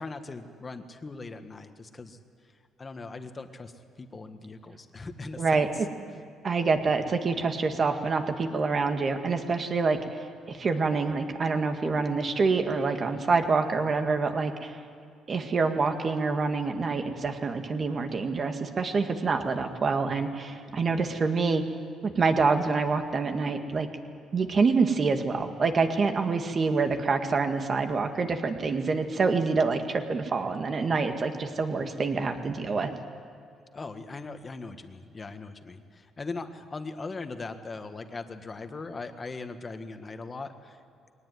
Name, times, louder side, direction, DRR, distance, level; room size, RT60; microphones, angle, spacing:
voice 1, 0.0-2.2 2.8-3.7 4.0-5.8 33.7-40.8, left 3 dB, 30° left, 7 dB, 1.6 m, -40 dB
voice 2, 5.4-5.7 6.4-14.7 15.3-21.6 22.2-23.9 24.3-32.9, right 4 dB, 40° right, 6 dB, 1.9 m, -26 dB
22.0 x 18.5 x 9.5 m, 2.4 s
cardioid pair, 110°, 0 cm